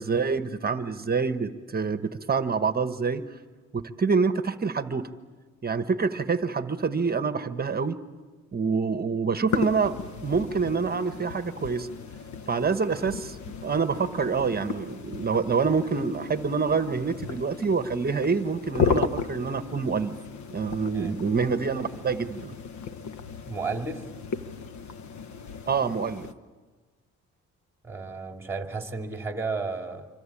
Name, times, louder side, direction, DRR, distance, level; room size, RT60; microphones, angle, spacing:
voice 1, 0.0-3.2 3.7-5.1 5.6-8.0 8.5-11.9 12.5-13.4 13.6-20.1 20.5-22.5 25.7-26.3, right 5 dB, 30° right, 10 dB, 1.2 m, -26 dB
sound 1, 9.5-26.3, left 5 dB, 70° left, 1.2 m, -35 dB
voice 2, 23.5-24.0 27.8-30.1, right 4 dB, 10° right, 4 dB, 2.8 m, -33 dB
26.5 x 24.0 x 8.7 m, 1.4 s
cardioid pair, 90°, 30 cm